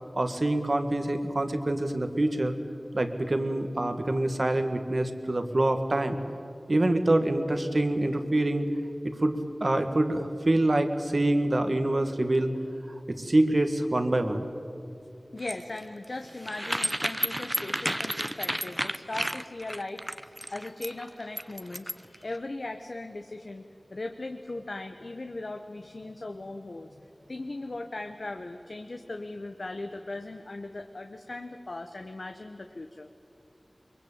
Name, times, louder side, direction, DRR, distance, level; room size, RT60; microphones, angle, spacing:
voice 1, 0.1-2.6 2.9-6.2 6.7-8.7 9.0-12.5 13.1-14.4, right 1 dB, 55° right, 8 dB, 1.9 m, -26 dB
voice 2, 15.3-33.1, left 2 dB, 65° left, 5 dB, 1.1 m, -39 dB
sound 1, 15.4-22.2, right 1 dB, 15° right, 0.8 m, -32 dB
23.0 x 23.0 x 8.8 m, 2.6 s
wide cardioid pair, 50°, 0 cm